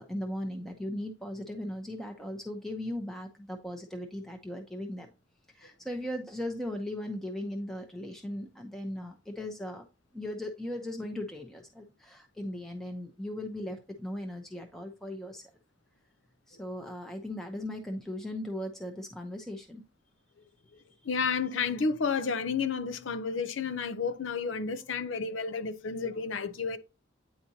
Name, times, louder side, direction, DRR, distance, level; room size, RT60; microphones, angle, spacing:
voice 1, 0.0-5.1 5.5-9.9 10.1-15.4 16.5-19.8, left 1 dB, ahead, 0.7 m, -38 dB
voice 2, 21.0-26.8, left 5 dB, 80° left, 0.6 m, -31 dB
9.4 x 4.2 x 2.8 m
head